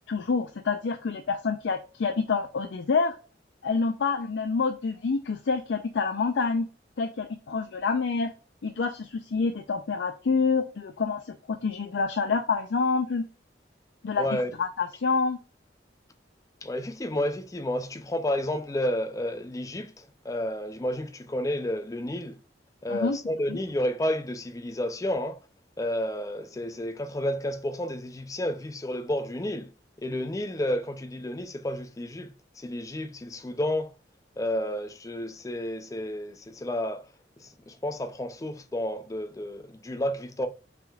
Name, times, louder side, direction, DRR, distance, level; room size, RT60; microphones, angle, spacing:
voice 1, 0.1-3.1 3.6-6.7 7.0-8.3 8.6-13.3 14.0-14.3 14.6-15.4 22.9-23.2 23.5-23.6, left 4 dB, 85° left, 0.5 m, -27 dB
voice 2, 14.2-14.5 16.6-22.4 22.8-25.4 25.8-29.7 30.0-33.9 34.4-37.0 37.4-40.5, left 1 dB, 20° left, 0.4 m, -31 dB
5.8 x 3.6 x 2.3 m
head